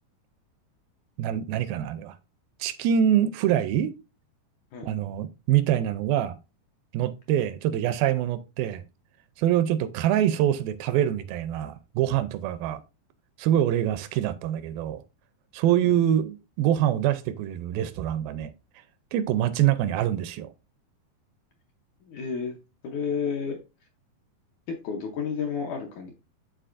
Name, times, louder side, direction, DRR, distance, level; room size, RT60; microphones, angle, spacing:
voice 1, 1.2-2.2 2.6-3.9 4.9-6.4 6.9-8.8 9.4-12.8 13.4-15.0 15.5-18.5 19.1-20.5, right 11 dB, 80° right, 2.3 m, -25 dB
voice 2, 22.0-22.6 22.8-23.6 24.7-26.2, left 6 dB, 75° left, 1.9 m, -31 dB
11.5 x 4.0 x 2.5 m
omnidirectional pair, 4.3 m